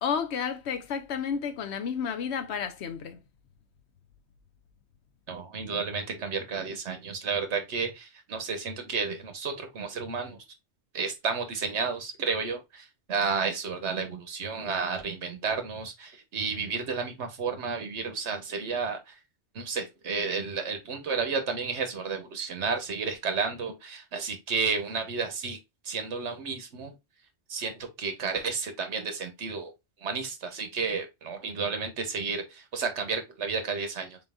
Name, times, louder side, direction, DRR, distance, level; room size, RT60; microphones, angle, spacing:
voice 1, 0.0-3.2, left 7 dB, 75° left, 1.0 m, -31 dB
voice 2, 5.3-10.4 10.9-19.1 19.5-25.6 25.8-26.9 27.5-29.7 30.0-34.2, right 5 dB, 85° right, 1.3 m, -32 dB
4.1 x 3.8 x 2.3 m
omnidirectional pair, 1.1 m